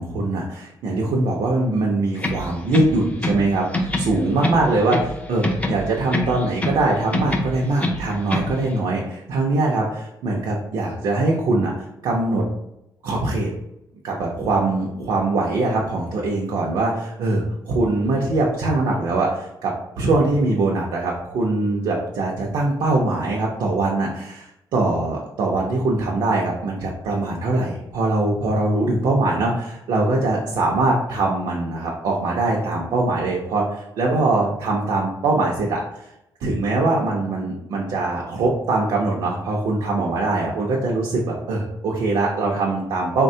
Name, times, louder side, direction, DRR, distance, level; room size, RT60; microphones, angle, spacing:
voice 1, 0.0-5.0 5.3-12.4 13.0-13.5 14.0-35.8 36.4-43.2, right 2 dB, 75° right, -2 dB, 0.5 m, -22 dB
sound 1, 2.2-3.5 3.7-5.2 5.4-6.9 7.1-8.6, left 1 dB, 20° left, 0.4 m, -25 dB
3.4 x 2.2 x 2.7 m, 0.84 s
cardioid pair, 120°, 8 cm